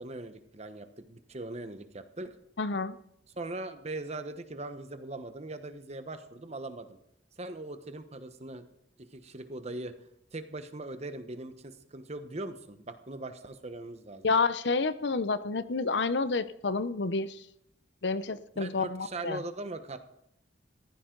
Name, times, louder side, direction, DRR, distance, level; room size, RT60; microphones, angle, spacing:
voice 1, 0.0-2.3 3.3-7.0 7.4-8.6 9.1-9.9 10.3-14.3 18.5-20.0, right 2 dB, 35° right, 9 dB, 1.1 m, -40 dB
voice 2, 2.6-3.0 14.2-17.4 18.0-19.4, left 4 dB, 65° left, 14 dB, 0.7 m, -29 dB
15.0 x 15.0 x 3.9 m, 0.79 s
head